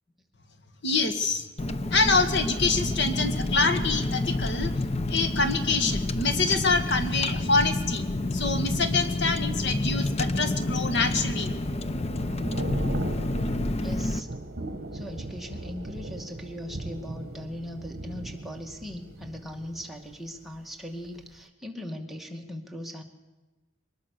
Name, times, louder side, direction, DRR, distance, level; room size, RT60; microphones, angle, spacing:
voice 1, 0.8-1.5 1.9-4.7 5.1-8.0 8.3-11.5, left 3 dB, 55° left, 8 dB, 1.8 m, -25 dB
Car, 1.6-14.2, left 2 dB, 30° left, 0.8 m, -29 dB
Thunder / Rain, 10.7-20.6 20.9-21.2, right 1 dB, 50° right, 1.4 m, -39 dB
voice 2, 13.8-14.3 14.9-23.0, equal, ahead, 1 dB, 2.2 m, -39 dB
24.5 x 20.0 x 6.6 m, 1.1 s
head